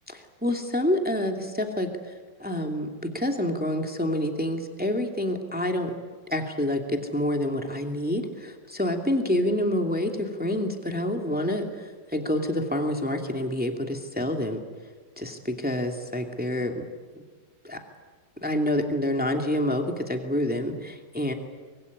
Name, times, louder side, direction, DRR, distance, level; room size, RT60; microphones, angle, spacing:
voice 1, 0.4-1.9 2.4-5.9 6.3-14.6 15.2-16.8 17.6-17.8 18.4-21.3, left 1 dB, 5° right, 3 dB, 1.9 m, -27 dB
25.5 x 22.5 x 9.7 m, 1.4 s
omnidirectional pair, 4.1 m